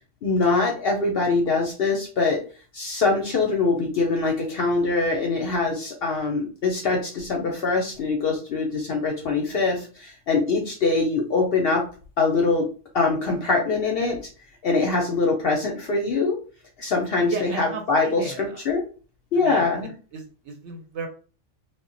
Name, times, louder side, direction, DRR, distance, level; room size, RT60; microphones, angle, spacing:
voice 1, 0.2-2.4 2.7-11.8 12.2-12.7 12.9-14.2 14.6-16.4 16.8-18.8 19.3-19.9, left 3 dB, 60° left, 1 dB, 0.6 m, -23 dB
voice 2, 17.3-18.6 19.3-19.6 20.1-21.1, right 5 dB, 65° right, 3 dB, 0.8 m, -35 dB
2.2 x 2.1 x 3.8 m, 0.37 s
omnidirectional pair, 1.4 m